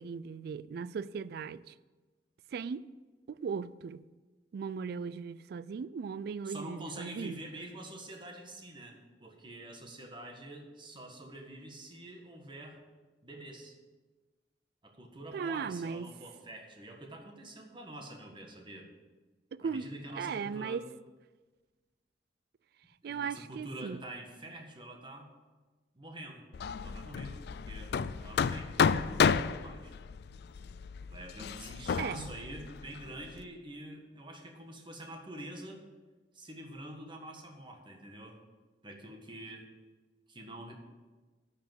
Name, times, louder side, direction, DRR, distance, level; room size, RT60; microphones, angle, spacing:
voice 1, 0.0-1.7 2.5-2.9 3.3-4.0 4.5-7.4 15.3-16.1 19.5-19.9 20.2-20.8 23.0-24.0 32.0-32.3, right 6 dB, 60° right, 0.3 m, -37 dB
voice 2, 6.4-12.8 13.2-13.8 14.8-18.9 19.6-20.8 23.0-25.3 25.9-26.5 26.8-29.3 29.6-30.0 31.1-35.8 36.3-38.4 38.8-39.7 40.3-40.8, right 1 dB, 30° right, 1.5 m, -46 dB
Hammer, 26.5-33.4, left 6 dB, 65° left, 0.4 m, -32 dB
9.8 x 5.8 x 7.7 m
head